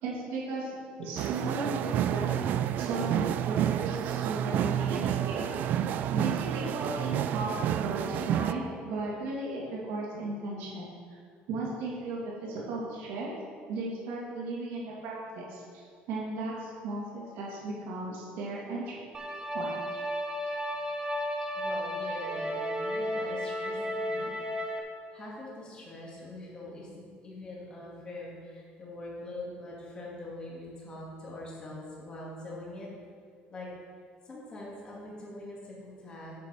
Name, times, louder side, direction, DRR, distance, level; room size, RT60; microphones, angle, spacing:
voice 1, 0.0-2.3 2.8-5.5 6.1-10.9 11.5-13.3 13.7-19.0 19.5-19.8, right 2 dB, 80° right, -5 dB, 2.8 m, -36 dB
sound 1, 1.2-8.5, right 10 dB, 50° right, 0.3 m, -29 dB
sound 2, 19.1-24.8, equal, 20° right, 1.0 m, -33 dB
voice 2, 21.6-24.3 25.1-32.9 33.5-33.7 34.2-36.3, left 2 dB, 25° left, -5 dB, 2.5 m, -43 dB
9.3 x 6.9 x 5.0 m, 2.1 s
cardioid pair, 155°, 4 cm